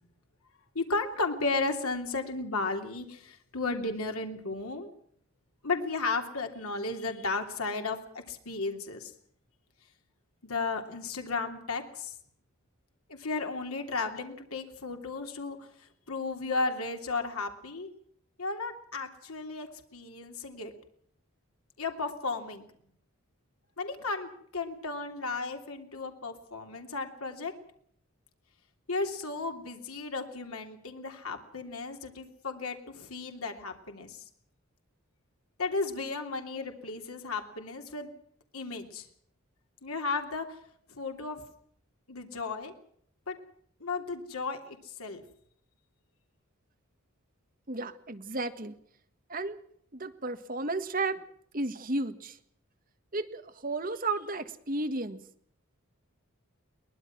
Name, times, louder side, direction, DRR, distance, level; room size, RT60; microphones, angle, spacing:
voice 1, 0.7-4.9 5.6-8.0 8.3-9.1 10.4-12.1 13.1-17.9 18.4-20.7 21.8-22.6 23.8-27.5 28.9-34.2 35.6-38.1 38.5-39.1 39.8-40.5 40.9-41.4 42.1-42.7 43.3-43.4 43.8-45.2, left 3 dB, 85° left, 4 dB, 3.1 m, -34 dB
voice 2, 47.7-48.8 49.3-49.6 49.9-51.2 51.5-52.4 53.1-55.2, right 2 dB, 40° right, 9 dB, 1.6 m, -33 dB
22.5 x 19.5 x 6.1 m, 0.64 s
head